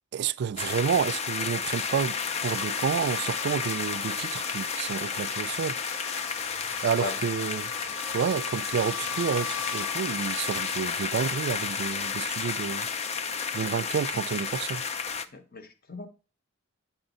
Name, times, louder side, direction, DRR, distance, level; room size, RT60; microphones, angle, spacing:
voice 1, 0.1-5.8 6.8-7.7 8.1-12.9 13.5-14.8, right 7 dB, 60° right, 0.3 m, -30 dB
sound 1, 0.6-15.3, left 6 dB, 35° left, 0.4 m, -32 dB
Domestic sounds home sounds, 2.2-11.4, left 5 dB, 75° left, 0.7 m, -40 dB
voice 2, 15.3-16.1, left 3 dB, 50° left, 0.9 m, -36 dB
8.9 x 4.1 x 4.0 m
head